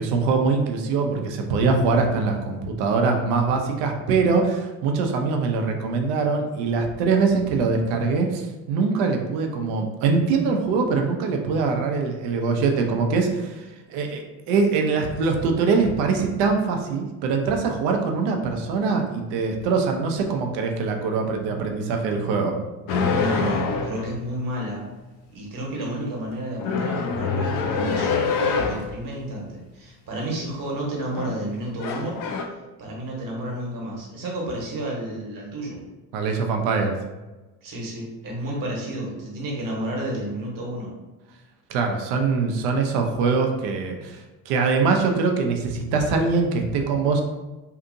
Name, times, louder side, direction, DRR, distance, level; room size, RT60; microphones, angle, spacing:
voice 1, 0.0-22.6 36.1-37.0 41.7-47.2, right 4 dB, 60° right, 3 dB, 0.6 m, -23 dB
sound 1, 22.9-24.2 26.6-28.9 31.0-31.4 31.8-32.4, left 5 dB, 50° left, 0.5 m, -25 dB
voice 2, 23.1-24.9 25.3-32.2 32.8-35.8 37.6-40.9, right 1 dB, 45° right, -2 dB, 1.2 m, -31 dB
2.8 x 2.5 x 2.6 m, 1.1 s
hypercardioid pair, 75°, 45 cm